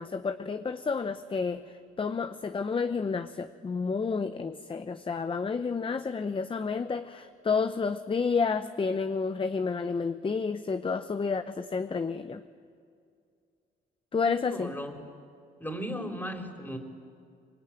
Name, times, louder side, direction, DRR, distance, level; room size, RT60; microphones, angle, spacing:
voice 1, 0.0-12.4 14.1-14.7, left 5 dB, 25° left, 10 dB, 0.8 m, -30 dB
voice 2, 14.2-14.9 15.6-16.8, equal, 10° left, 4 dB, 3.7 m, -36 dB
23.5 x 22.0 x 10.0 m, 2.3 s
cardioid pair, 90°, 20 cm